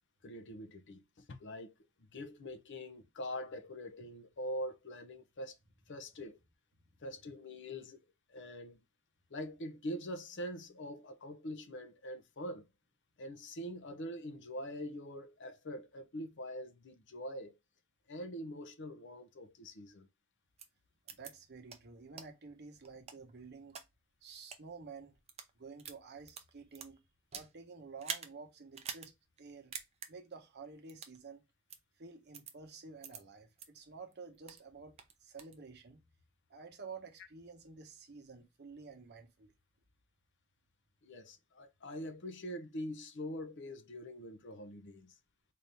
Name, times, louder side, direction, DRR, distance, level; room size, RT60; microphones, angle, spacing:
voice 1, 0.2-1.7 2.0-5.6 5.9-6.4 7.0-8.0 8.3-8.8 9.3-12.6 13.2-17.6 18.1-20.1 41.0-45.1, equal, 55° left, 0.6 m, -44 dB
sound 1, 20.6-20.7 21.1-21.3 21.7-21.8 22.2-22.3 22.8-23.8 24.4-24.6 25.2-25.5 25.8-27.5 28.0-28.3 28.7-29.1 29.4-29.5 29.7-30.1 30.9-31.2 31.7-31.8 32.3-32.5 33.0-33.2 33.6-33.7 34.1-34.6 35.0-35.6, right 6 dB, 30° right, 0.5 m, -45 dB
voice 2, 21.1-23.8 24.2-25.2 25.6-27.0 27.3-29.1 29.4-29.7 30.1-31.4 32.0-34.9 35.2-36.0 36.5-39.5, right 4 dB, 50° right, 0.9 m, -51 dB
4.1 x 2.6 x 3.3 m
head